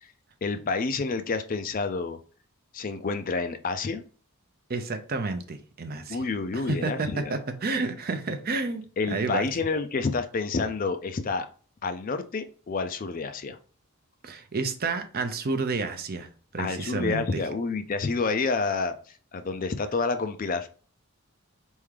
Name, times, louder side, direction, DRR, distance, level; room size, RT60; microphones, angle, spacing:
voice 1, 0.4-2.2 2.7-4.0 6.1-7.4 9.0-11.5 11.8-13.6 16.6-20.7, left 4 dB, 40° left, 0.4 m, -29 dB
voice 2, 4.7-6.3 6.5-8.8 9.1-9.5 14.2-17.4, right 3 dB, 40° right, 0.5 m, -30 dB
4.3 x 3.6 x 3.3 m
head